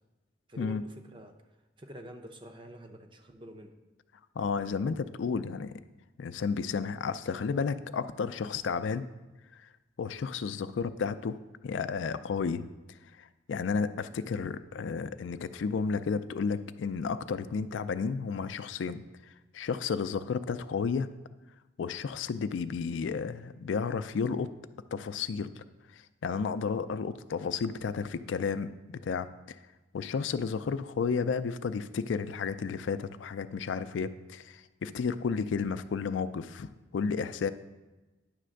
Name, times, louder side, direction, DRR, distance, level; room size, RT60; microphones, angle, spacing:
voice 1, 0.5-1.3 1.8-3.7, equal, 25° right, 5 dB, 0.6 m, -47 dB
voice 2, 4.4-5.7 6.2-9.1 10.0-12.7 13.2-19.0 19.5-21.1 21.8-24.5 24.9-25.6 25.9-29.6 29.9-37.5, left 5 dB, 85° left, 12 dB, 0.4 m, -32 dB
9.9 x 3.3 x 6.3 m, 1.1 s
head